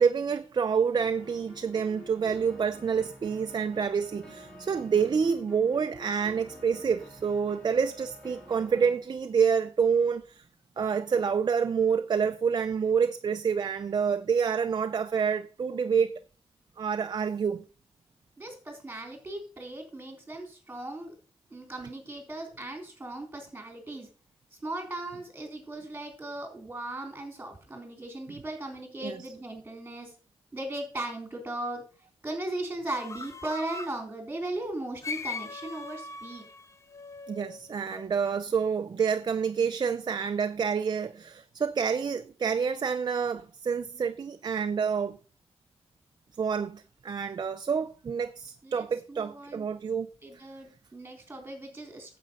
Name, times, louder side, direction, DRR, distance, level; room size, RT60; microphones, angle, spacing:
voice 1, 0.0-10.4 10.8-16.2 16.8-17.6 29.0-29.3 37.3-45.2 46.4-50.1, right 6 dB, 45° right, 0.5 m, -28 dB
sound 1, 1.0-9.0, left 1 dB, 10° left, 3.6 m, -49 dB
voice 2, 18.4-21.1 21.5-24.1 24.6-30.1 30.5-31.8 32.2-36.4 48.6-49.7 50.2-52.2, right 1 dB, 15° right, 3.6 m, -37 dB
sound 2, 32.9-34.0 35.0-38.1, left 4 dB, 30° left, 0.7 m, -40 dB
9.2 x 7.6 x 5.3 m
wide cardioid pair, 150°, 10 cm